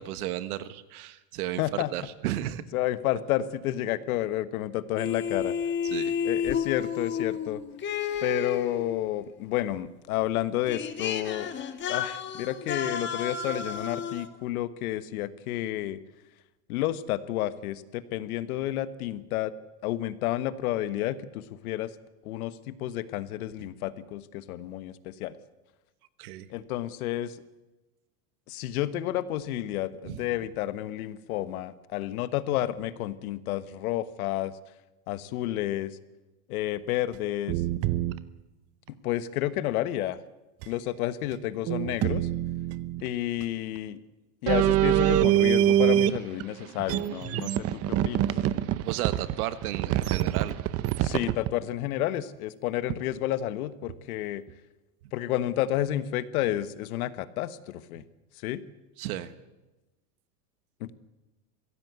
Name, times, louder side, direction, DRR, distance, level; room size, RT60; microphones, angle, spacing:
voice 1, 0.0-2.6 5.9-6.1 26.2-26.5 30.0-30.2 48.8-50.6 59.0-59.3, right 13 dB, 75° right, 12 dB, 1.6 m, -33 dB
voice 2, 1.6-1.9 2.7-5.5 6.2-7.6 8.2-11.5 11.9-16.0 16.7-19.5 19.8-21.9 22.2-25.3 26.5-27.4 28.5-34.5 35.1-36.0 36.5-37.6 39.0-40.2 40.7-42.3 43.0-44.0 44.4-48.3 51.0-54.4 55.1-58.0 58.4-58.6 60.8-60.9, left 13 dB, 70° left, 13 dB, 1.4 m, -30 dB
sound 1, 5.0-9.1 10.3-10.4 10.7-14.3, left 7 dB, 25° left, 1.6 m, -31 dB
sound 2, 37.1-37.2 37.5-38.2 40.6-40.7 41.3-41.4 41.7-43.0 43.4-43.5 44.5-46.4 46.8-51.5 52.9-53.0 53.9-54.0, right 12 dB, 30° right, 0.8 m, -25 dB
22.5 x 16.0 x 8.2 m, 1.1 s
supercardioid pair, 145°, 45 cm